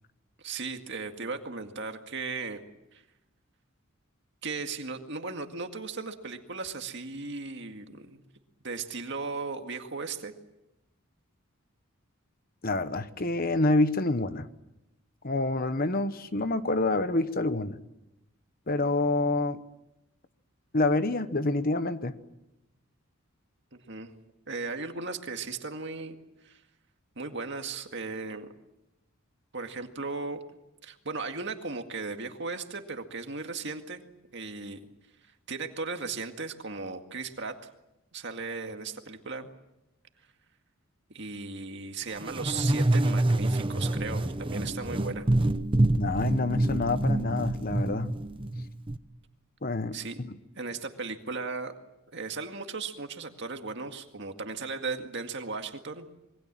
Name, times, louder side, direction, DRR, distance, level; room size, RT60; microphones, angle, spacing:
voice 1, 0.4-2.6 2.9-3.0 4.4-8.2 8.6-10.3 23.7-24.1 24.5-26.2 26.4-26.6 27.2-28.5 29.5-30.4 30.8-34.0 34.3-34.8 35.5-37.6 38.1-39.5 41.1-45.3 49.9-50.2 50.6-51.7 52.1-56.1, right 4 dB, 55° right, 5 dB, 2.1 m, -36 dB
voice 2, 12.6-14.5 15.2-17.8 18.7-19.6 20.7-22.1 46.0-48.1 49.6-50.3, left 2 dB, 40° left, 11 dB, 1.1 m, -27 dB
sound 1, 42.2-49.0, right 1 dB, 25° right, 0.9 m, -27 dB
27.0 x 23.0 x 7.6 m, 0.92 s
head